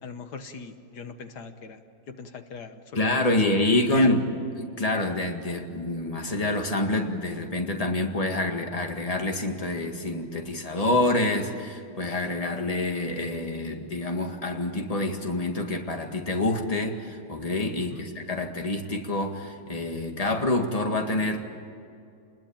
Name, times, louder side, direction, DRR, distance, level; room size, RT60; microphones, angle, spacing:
voice 1, 0.0-1.8 2.1-3.4 3.9-4.1 17.9-18.1, left 5 dB, 80° left, 8 dB, 1.8 m, -39 dB
voice 2, 2.9-4.2 4.6-21.5, left 2 dB, 20° left, 3 dB, 2.0 m, -27 dB
29.0 x 21.0 x 8.9 m, 2.5 s
omnidirectional pair, 1.8 m